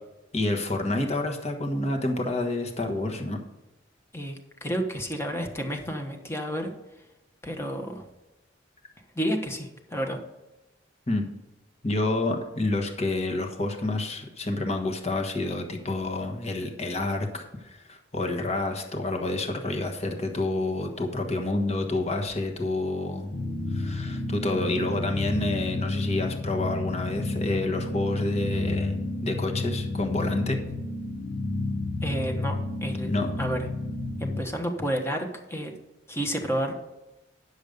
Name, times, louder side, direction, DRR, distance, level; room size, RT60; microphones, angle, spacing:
voice 1, 0.3-3.4 11.1-11.3 11.8-23.4 23.7-30.6 33.0-33.3, left 2 dB, 35° left, 3 dB, 1.3 m, -28 dB
voice 2, 4.1-6.7 7.4-8.1 9.1-10.2 32.0-33.7 34.2-35.7 36.1-36.7, equal, 15° left, 3 dB, 1.1 m, -30 dB
sound 1, 23.3-34.4, left 2 dB, 60° left, 1.2 m, -31 dB
10.0 x 6.7 x 5.1 m, 1.0 s
head